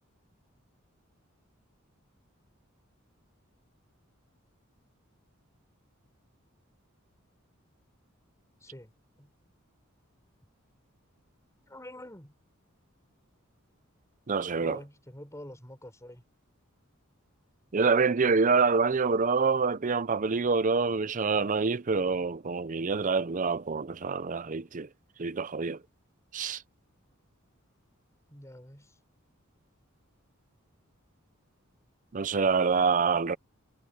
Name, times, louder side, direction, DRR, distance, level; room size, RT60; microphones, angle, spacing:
voice 1, 8.6-8.9 9.2-9.3 11.7-12.3 14.6-16.2 28.3-29.0, left 1 dB, 15° left, 6.2 m, -46 dB
voice 2, 14.3-14.8 17.7-24.9 25.2-25.8 26.3-26.6 32.1-33.4, right 4 dB, 40° right, 0.6 m, -26 dB
head